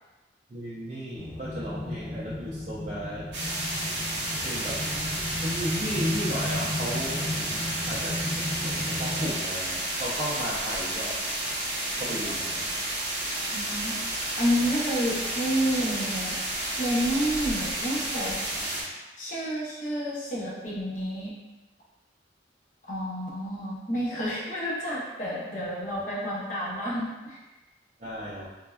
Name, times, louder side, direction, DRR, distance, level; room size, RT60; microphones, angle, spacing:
voice 1, 0.5-3.3 4.4-4.8 5.4-7.5 7.8-11.2 12.0-12.7 28.0-28.5, equal, 40° right, -9 dB, 0.4 m, -34 dB
sound 1, 1.1-9.3, left 1 dB, 5° right, 0.8 m, -35 dB
sound 2, 3.3-18.8, right 1 dB, 65° right, 0.8 m, -31 dB
voice 2, 13.5-14.0 14.4-18.4 19.2-21.3 22.9-27.4, equal, 45° left, -6 dB, 0.7 m, -30 dB
3.3 x 2.1 x 2.2 m, 1.1 s
head